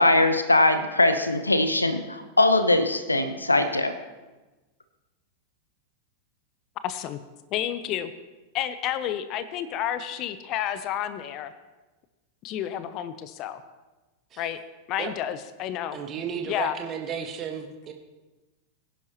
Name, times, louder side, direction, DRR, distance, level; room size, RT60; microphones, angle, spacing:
voice 1, 0.0-3.9, left 2 dB, 80° left, 10 dB, 0.9 m, -21 dB
voice 2, 6.8-7.2 7.5-8.1 8.5-11.5 12.4-13.6 14.4-14.6 14.9-16.0 16.5-16.7, left 11 dB, 40° left, 12 dB, 0.8 m, -30 dB
voice 3, 15.9-17.9, right 7 dB, 30° right, 4 dB, 1.6 m, -34 dB
22.5 x 10.0 x 3.0 m, 1.2 s
figure-of-eight pair, 90°, 0 cm